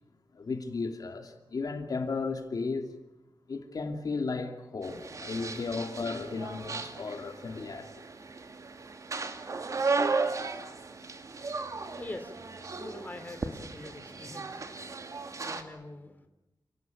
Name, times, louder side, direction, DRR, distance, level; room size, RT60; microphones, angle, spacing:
voice 1, 0.3-2.9 3.5-8.0, left 4 dB, 60° left, 2.6 m, -34 dB
sound 1, 4.8-15.6, right 4 dB, 50° right, 2.4 m, -35 dB
voice 2, 4.9-5.8 11.5-16.3, left 2 dB, 25° left, 2.8 m, -46 dB
29.5 x 18.5 x 9.2 m
wide cardioid pair, 145°, 7 cm